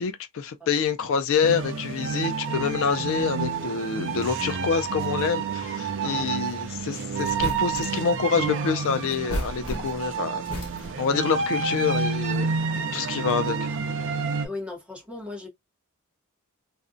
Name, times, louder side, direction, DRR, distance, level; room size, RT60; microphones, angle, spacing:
voice 1, 0.0-10.4 11.0-12.5 12.9-13.7, left 6 dB, 60° left, 0.3 m, -26 dB
sound 1, 1.4-14.5, right 5 dB, 55° right, 0.4 m, -29 dB
sound 2, 6.8-6.9 7.2-8.1 9.1-10.1 10.4-11.1, equal, 80° left, 1.0 m, -34 dB
voice 2, 14.4-15.5, left 2 dB, 5° right, 0.7 m, -37 dB
2.5 x 2.1 x 2.4 m
head